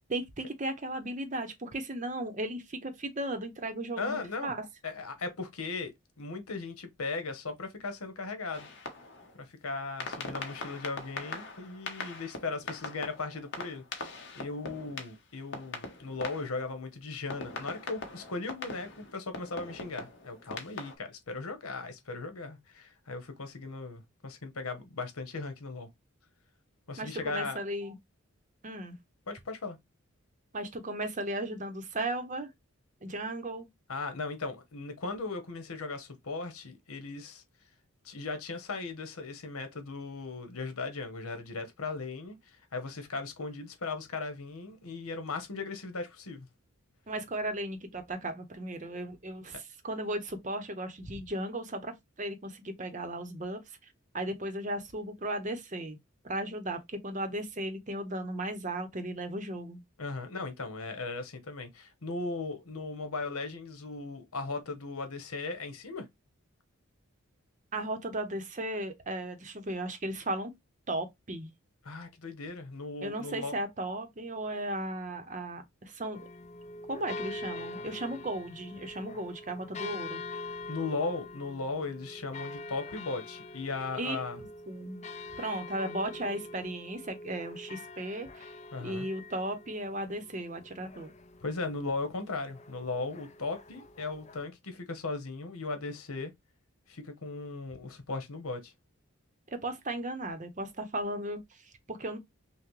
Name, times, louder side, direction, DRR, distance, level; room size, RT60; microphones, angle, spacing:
voice 1, 0.1-4.7 27.0-28.0 28.6-29.0 30.5-32.5 33.0-33.7 47.1-56.0 56.2-59.8 67.7-70.5 70.9-71.5 73.0-76.3 76.9-80.2 83.9-85.0 85.4-88.5 88.8-91.1 99.5-102.2, right 1 dB, 35° right, 0.7 m, -36 dB
voice 2, 4.0-4.5 4.8-8.7 9.4-25.9 26.9-27.6 29.3-29.8 33.9-37.4 38.0-46.5 60.0-66.1 71.8-73.6 80.7-84.4 88.7-89.1 91.4-96.3 96.9-98.7, left 3 dB, 85° left, 1.1 m, -37 dB
sound 1, 8.5-9.4 10.0-16.9 17.3-20.9, left 3 dB, 55° left, 1.0 m, -42 dB
sound 2, 76.1-94.5, left 2 dB, 30° left, 0.4 m, -44 dB
5.7 x 2.1 x 3.1 m
head